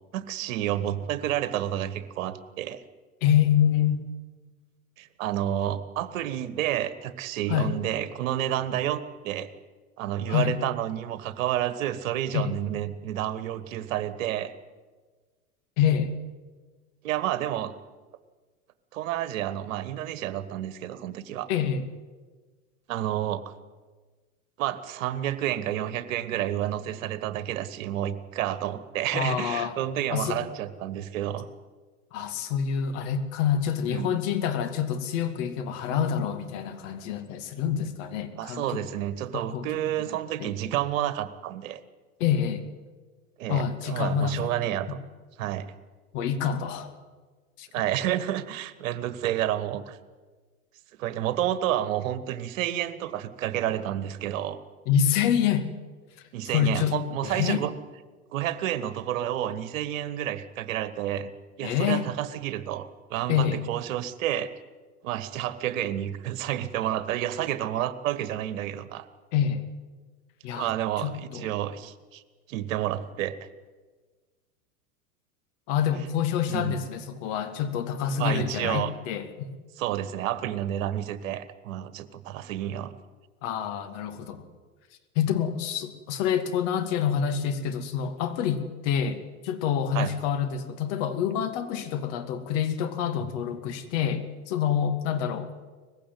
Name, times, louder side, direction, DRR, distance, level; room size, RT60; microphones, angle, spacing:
voice 1, 0.1-2.8 5.0-9.5 10.0-14.5 17.0-17.7 18.9-21.5 22.9-23.5 24.6-31.5 33.9-34.2 38.4-41.8 43.4-45.0 45.4-45.7 47.7-50.0 51.0-54.6 56.3-57.7 58.3-61.3 61.6-64.5 65.0-69.1 70.5-72.2 72.5-73.5 76.5-76.7 78.2-78.9 79.8-82.9 89.9-90.1, right 12 dB, 60° right, 14 dB, 1.5 m, -30 dB
voice 2, 3.2-4.0 7.5-7.7 10.3-10.5 12.3-12.5 15.8-16.1 21.5-21.8 29.1-29.8 30.1-30.4 32.1-38.8 39.3-39.7 40.1-40.5 42.2-42.7 43.5-44.5 44.9-45.0 46.1-46.9 47.6-47.7 54.9-55.7 56.5-56.9 57.2-57.7 61.6-62.1 63.3-63.6 69.3-69.6 70.4-70.7 71.0-71.5 75.7-79.5 83.4-84.5 85.2-95.5, left 8 dB, 55° left, 9 dB, 2.4 m, -27 dB
20.0 x 15.5 x 9.5 m, 1.4 s
figure-of-eight pair, 85°, 44 cm